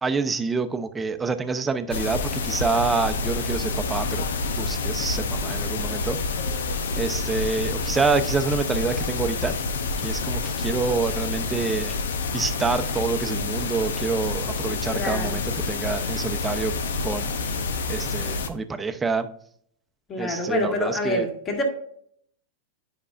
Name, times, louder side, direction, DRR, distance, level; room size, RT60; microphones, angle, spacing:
voice 1, 0.0-4.2 4.6-6.2 6.9-9.5 10.0-12.0 12.3-15.4 15.7-16.7 17.0-17.3 17.9-19.3 20.2-21.3, right 4 dB, 15° right, 8 dB, 0.7 m, -27 dB
sound 1, 1.9-18.5, left 3 dB, 85° left, 0.8 m, -28 dB
voice 2, 14.8-15.4 20.1-21.6, left 1 dB, 30° left, 1 dB, 2.1 m, -27 dB
9.8 x 5.4 x 2.5 m, 0.65 s
hypercardioid pair, 120°, 0 cm